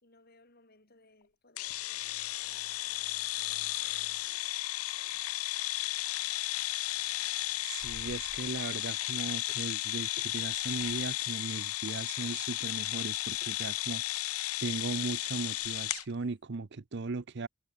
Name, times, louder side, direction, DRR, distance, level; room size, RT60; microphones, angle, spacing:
voice 1, 0.0-2.1 2.5-6.4, left 2 dB, 45° left, 5.1 m, -65 dB
sound 1, 1.6-16.0, left 18 dB, 85° left, 0.5 m, -34 dB
voice 2, 7.6-14.3 14.6-17.5, right 3 dB, 55° right, 0.6 m, -38 dB
head